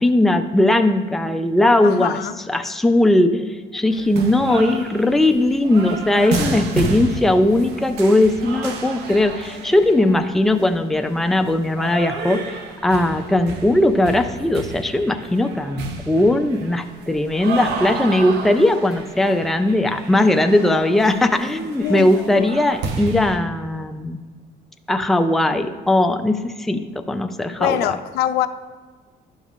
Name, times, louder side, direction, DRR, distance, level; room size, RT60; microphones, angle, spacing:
voice 1, 0.0-2.2 2.5-24.2 24.9-27.9, left 1 dB, ahead, 0.4 m, -19 dB
voice 2, 1.8-2.3 21.8-22.5 27.6-28.5, left 11 dB, 75° left, 0.4 m, -23 dB
sound 1, 3.9-23.4, right 3 dB, 80° right, 0.9 m, -31 dB
11.5 x 5.5 x 2.4 m
cardioid pair, 110°, 17 cm